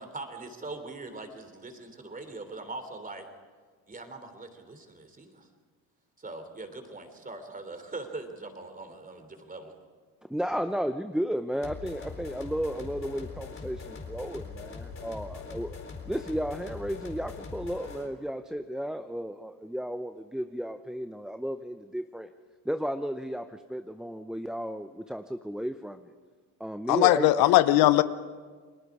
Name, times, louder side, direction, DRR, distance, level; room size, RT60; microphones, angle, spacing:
voice 1, 0.0-3.3 3.9-5.5 6.2-9.7, right 2 dB, 20° right, 3.4 m, -41 dB
voice 2, 10.3-15.8 16.0-22.3 22.6-26.1 26.6-27.4, equal, ahead, 0.7 m, -33 dB
sound 1, 11.6-18.1, left 5 dB, 35° left, 4.0 m, -42 dB
voice 3, 26.9-28.0, left 15 dB, 75° left, 0.9 m, -19 dB
30.0 x 20.5 x 4.9 m
supercardioid pair, 85°, 36 cm